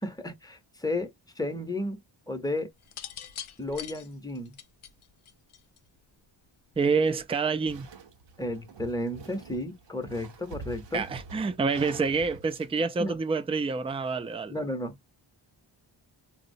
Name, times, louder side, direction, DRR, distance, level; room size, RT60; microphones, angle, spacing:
voice 1, 0.0-2.0 2.3-2.7 3.6-4.5 8.4-11.0 13.0-13.2 14.5-14.9, left 1 dB, 10° left, 0.7 m, -33 dB
sound 1, 2.8-6.0 7.1-7.4, left 10 dB, 85° left, 0.6 m, -43 dB
voice 2, 6.8-7.9 10.9-14.6, right 4 dB, 15° right, 0.3 m, -27 dB
sound 2, 7.7-12.8, right 4 dB, 60° right, 0.8 m, -46 dB
3.9 x 2.0 x 2.6 m
wide cardioid pair, 85°, 48 cm